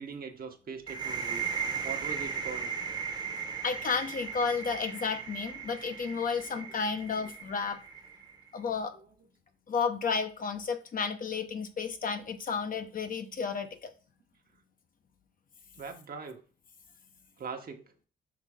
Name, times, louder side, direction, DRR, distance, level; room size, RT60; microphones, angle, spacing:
voice 1, 0.0-1.4 1.8-2.7 15.8-16.4 17.4-17.8, right 5 dB, 50° right, 1.1 m, -41 dB
sound 1, 0.9-8.4, right 6 dB, 20° right, 1.0 m, -37 dB
voice 2, 3.6-7.8 8.5-8.9 9.7-13.9, left 5 dB, 45° left, 0.8 m, -32 dB
5.9 x 3.2 x 4.9 m
cardioid pair, 90°, 20 cm